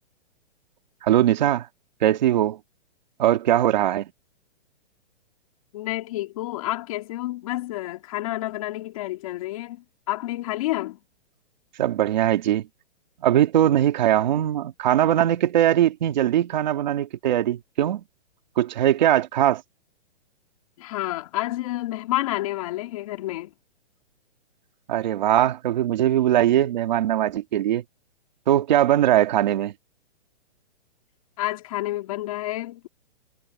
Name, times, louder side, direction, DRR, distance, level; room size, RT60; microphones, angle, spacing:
voice 1, 1.0-1.7 2.0-2.6 3.2-4.1 11.8-12.7 13.2-18.0 18.6-19.6 24.9-27.8 28.5-29.7, right 12 dB, 45° right, 2.2 m, -21 dB
voice 2, 5.7-11.0 20.8-23.5 31.4-32.9, left 17 dB, 35° left, 2.8 m, -29 dB
hypercardioid pair, 175°, 32 cm